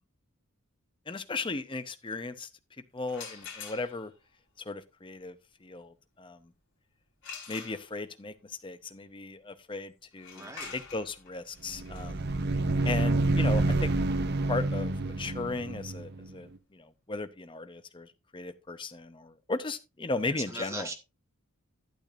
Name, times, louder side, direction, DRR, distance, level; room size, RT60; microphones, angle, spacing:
voice 1, 1.1-2.5 2.9-4.1 4.7-5.4 5.6-6.5 7.5-12.2 12.8-13.9 14.5-20.9, left 3 dB, 25° left, 0.6 m, -36 dB
sound 1, 3.0-4.2 7.2-8.2 10.1-15.8, left 6 dB, 55° left, 3.3 m, -47 dB
voice 2, 10.3-10.7 20.3-20.9, right 2 dB, 15° right, 1.5 m, -39 dB
sound 2, 11.7-16.3, right 2 dB, 50° right, 0.7 m, -28 dB
12.0 x 8.4 x 2.5 m
head